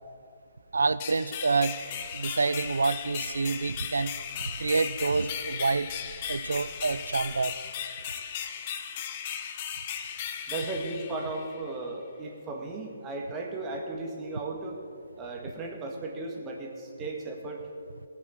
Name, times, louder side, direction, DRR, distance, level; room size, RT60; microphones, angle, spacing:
voice 1, 0.7-1.8 2.1-4.1 4.6-5.9 6.3-7.5, right 4 dB, 75° right, 16 dB, 0.5 m, -27 dB
sound 1, 1.0-11.7, left 8 dB, 35° left, 0.8 m, -37 dB
sound 2, 1.8-7.5, right 3 dB, 45° right, 2.9 m, -50 dB
voice 2, 10.5-14.8 15.2-17.6, right 2 dB, 20° right, 0 dB, 1.8 m, -36 dB
18.0 x 6.1 x 7.1 m, 2.4 s
figure-of-eight pair, 140°, 0 cm